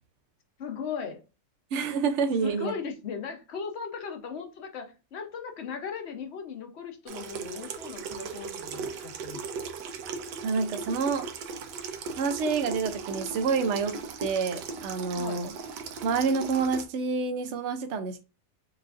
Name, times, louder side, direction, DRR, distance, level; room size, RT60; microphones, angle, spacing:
voice 1, 0.6-1.2 2.4-9.4 15.1-15.4, left 6 dB, 55° left, 5 dB, 0.8 m, -38 dB
voice 2, 1.7-2.8 10.4-11.3 12.1-15.5 16.0-18.2, right 5 dB, 65° right, 8 dB, 0.7 m, -28 dB
Water tap faucet / Sink (filling or washing), 7.1-16.8, right 5 dB, 85° right, 1.3 m, -38 dB
6.5 x 2.5 x 2.4 m, 0.31 s
omnidirectional pair, 1.8 m